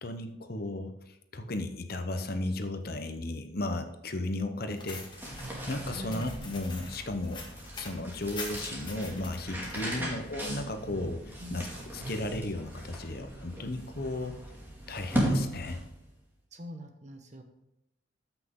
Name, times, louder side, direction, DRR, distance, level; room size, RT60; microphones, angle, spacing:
voice 1, 0.0-7.4 7.8-11.7 11.9-14.4 14.9-15.8, left 2 dB, 50° left, 8 dB, 0.8 m, -35 dB
sound 1, 4.7-9.8, left 3 dB, 25° left, 1.7 m, -45 dB
sound 2, 5.0-16.1, right 1 dB, 10° right, 2.2 m, -37 dB
voice 2, 5.9-6.3 10.0-10.2 11.4-11.6 16.5-17.4, equal, 35° right, 6 dB, 1.1 m, -42 dB
13.5 x 6.0 x 3.8 m, 0.88 s
head